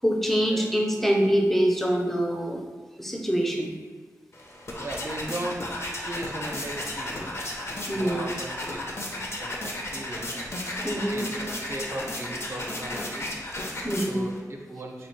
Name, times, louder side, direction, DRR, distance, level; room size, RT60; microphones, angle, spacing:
voice 1, 0.0-2.6 3.0-3.7 7.8-8.2 10.8-11.3 13.8-14.3, equal, 5° left, 1 dB, 0.5 m, -25 dB
sound 1, 4.3-14.4, left 1 dB, 50° left, 0.6 m, -34 dB
voice 2, 4.8-7.5 7.9-11.3 11.5-13.3 14.1-15.1, right 1 dB, 45° right, 1 dB, 0.5 m, -38 dB
3.3 x 2.4 x 4.5 m, 1.4 s
wide cardioid pair, 80°, 6 cm